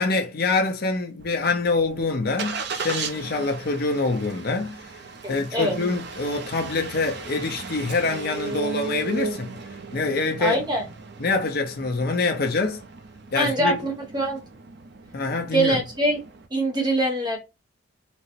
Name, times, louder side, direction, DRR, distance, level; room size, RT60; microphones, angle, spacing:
voice 1, 0.0-4.8 5.3-9.6 9.9-10.6 11.2-12.8 13.3-13.8 15.1-15.8, left 3 dB, 50° left, 0.6 m, -25 dB
Engine starting, 1.2-16.5, right 4 dB, 55° right, 0.5 m, -37 dB
voice 2, 5.2-5.8 10.4-10.8 13.3-14.4 15.5-16.2 16.5-17.4, right 1 dB, 20° right, 0.9 m, -23 dB
4.2 x 2.1 x 2.6 m
head